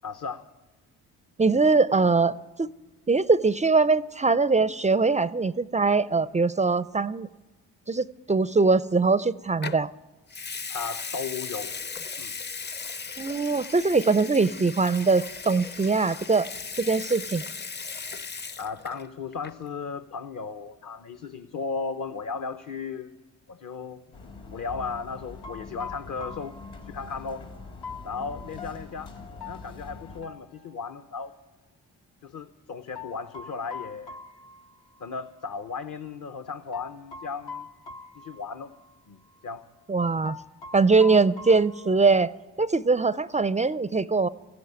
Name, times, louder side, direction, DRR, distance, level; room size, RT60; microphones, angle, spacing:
voice 1, 0.0-0.4 10.7-11.7 12.2-12.3 18.6-23.1 23.5-24.0 24.5-26.6 26.8-27.5 28.0-29.1 29.4-31.3 32.2-34.2 35.0-37.7 38.1-38.7 39.1-39.2 39.4-39.6, left 5 dB, 50° left, 11 dB, 0.9 m, -35 dB
voice 2, 1.4-2.7 3.1-7.3 7.9-9.9 13.2-16.5 16.8-17.4 39.9-40.4 40.7-44.3, right 4 dB, 20° right, 17 dB, 0.4 m, -22 dB
Water tap faucet / Sink (filling or washing) / Liquid, 9.6-9.9 10.3-19.1 19.3-19.7, left 5 dB, 25° left, 0.6 m, -37 dB
sound 1, 24.1-30.2, left 3 dB, 85° left, 2.9 m, -44 dB
sound 2, 25.4-31.2 32.9-35.2 35.5-35.6 36.7-39.0 39.3-39.4 40.2-42.3, left 5 dB, 70° left, 1.0 m, -44 dB
15.0 x 9.5 x 9.5 m, 1.2 s
supercardioid pair, 50°, 40 cm